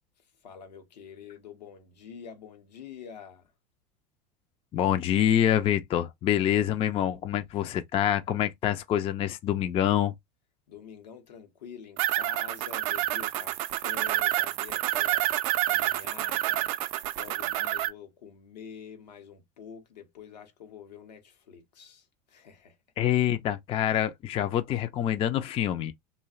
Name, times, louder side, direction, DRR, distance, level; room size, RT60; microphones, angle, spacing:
voice 1, 0.4-3.5 10.7-15.3 15.6-16.7 17.2-22.8, left 7 dB, 80° left, 0.7 m, -47 dB
voice 2, 4.7-10.1 23.0-25.9, left 11 dB, 25° left, 0.3 m, -26 dB
sound 1, 12.0-17.9, right 15 dB, 55° right, 0.4 m, -28 dB
2.6 x 2.1 x 2.3 m
hypercardioid pair, 90°, 21 cm